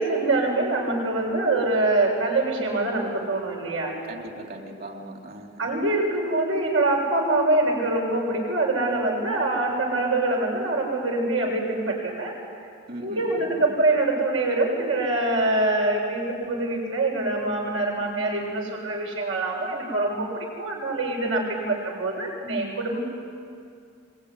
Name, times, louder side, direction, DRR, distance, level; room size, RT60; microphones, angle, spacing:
voice 1, 0.0-4.0 5.6-12.3 13.0-23.0, right 2 dB, 80° right, -1 dB, 7.5 m, -24 dB
voice 2, 4.0-5.6 12.9-13.7, right 1 dB, 50° right, 2 dB, 3.3 m, -39 dB
26.0 x 22.5 x 10.0 m, 2.3 s
head